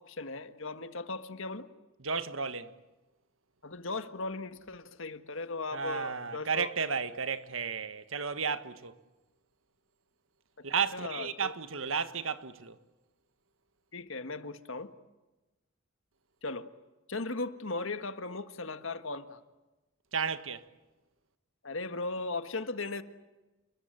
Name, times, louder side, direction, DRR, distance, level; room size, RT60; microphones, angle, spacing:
voice 1, 0.0-1.7 3.6-6.7 10.9-11.5 13.9-14.9 16.4-16.7 17.1-19.4 21.6-23.0, left 3 dB, 70° left, 1.7 m, -37 dB
voice 2, 2.0-2.7 5.7-8.9 10.6-12.8 20.1-20.7, right 6 dB, 70° right, 1.5 m, -33 dB
30.0 x 21.5 x 9.1 m
head